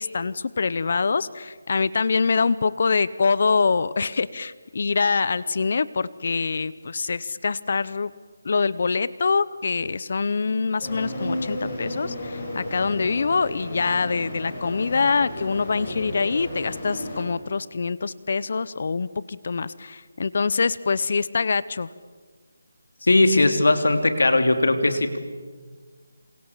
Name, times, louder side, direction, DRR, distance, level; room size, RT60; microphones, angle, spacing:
voice 1, 0.0-8.1 8.4-21.9, left 4 dB, 50° left, 18 dB, 0.8 m, -24 dB
sound 1, 10.8-17.2, left 1 dB, 25° left, 7.7 m, -33 dB
voice 2, 23.0-25.2, left 2 dB, 80° left, 7 dB, 3.3 m, -19 dB
28.0 x 28.0 x 7.3 m, 1.5 s
figure-of-eight pair, 170°, 0 cm